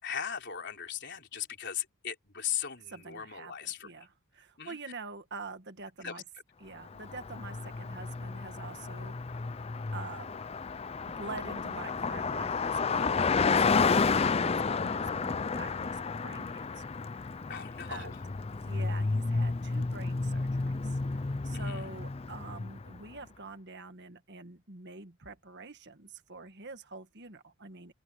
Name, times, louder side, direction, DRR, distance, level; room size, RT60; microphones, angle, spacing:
voice 1, 0.0-3.9 4.6-4.8 6.0-6.2 17.5-18.2 21.5-21.8, left 9 dB, 50° left, 4.1 m, -38 dB
voice 2, 2.9-6.2 6.6-9.4 9.9-10.4 11.1-16.9 17.3-17.4 17.9-18.2 18.6-21.2 21.4-27.9, right 3 dB, 50° right, 1.9 m, -46 dB
Car passing by, 6.9-23.0, left 4 dB, 25° left, 0.4 m, -31 dB
open air
head